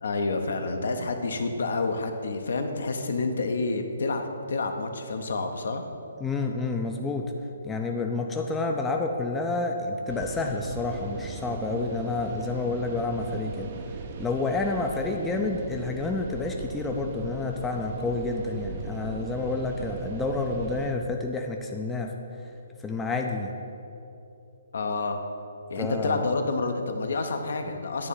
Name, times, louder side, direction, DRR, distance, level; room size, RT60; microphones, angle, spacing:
voice 1, 0.0-4.2 4.5-5.8 24.7-25.2 25.7-28.1, left 3 dB, 60° left, 6 dB, 0.7 m, -28 dB
voice 2, 6.2-7.3 7.6-13.7 14.2-22.1 22.4-22.5 22.8-23.5 25.8-26.2, left 3 dB, 10° left, 2 dB, 0.4 m, -29 dB
sound 1, 10.1-20.9, right 5 dB, 40° right, 0.6 m, -38 dB
9.7 x 3.5 x 6.9 m, 2.8 s
figure-of-eight pair, 130°, 0 cm